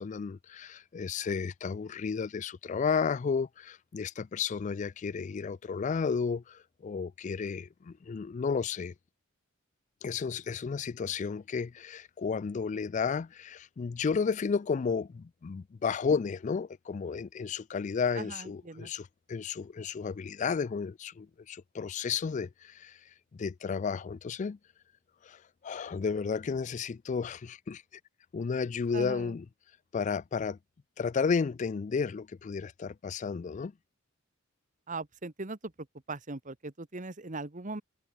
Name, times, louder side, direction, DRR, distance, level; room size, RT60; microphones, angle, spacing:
voice 1, 0.0-8.9 10.0-23.0 23.3-24.6 25.2-27.8 28.3-29.5 29.9-30.6 31.0-33.7, left 5 dB, 35° left, 0.3 m, -32 dB
voice 2, 18.2-18.9 28.9-29.3 34.9-35.7 36.1-37.8, right 3 dB, 40° right, 1.4 m, -39 dB
head